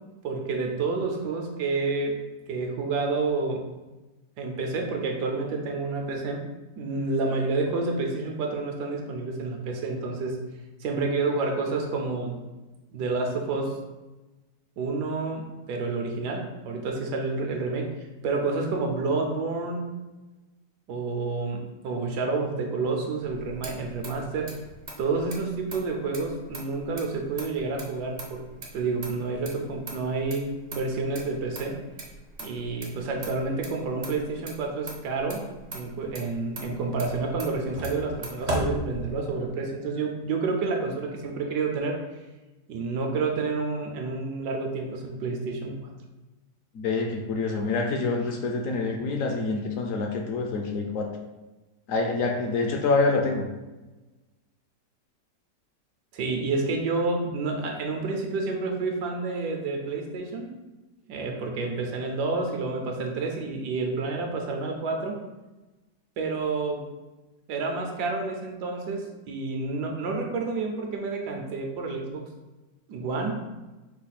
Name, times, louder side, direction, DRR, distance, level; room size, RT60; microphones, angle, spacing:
voice 1, 0.2-2.2 2.5-3.6 4.4-6.5 6.8-10.4 10.8-12.4 12.9-13.8 14.8-17.9 18.2-19.9 20.9-24.5 25.0-28.4 28.7-31.8 32.4-35.4 35.7-42.0 42.7-45.9 56.1-60.5 61.1-65.2 66.2-66.9 67.5-72.3 72.9-73.3, right 3 dB, 80° right, 2 dB, 1.2 m, -29 dB
Motor vehicle (road), 23.2-39.5, right 1 dB, 50° right, 0.5 m, -39 dB
voice 2, 46.7-51.1 51.9-53.5, left 3 dB, 70° left, 2 dB, 0.8 m, -26 dB
4.9 x 2.3 x 4.1 m, 1.1 s
omnidirectional pair, 1.8 m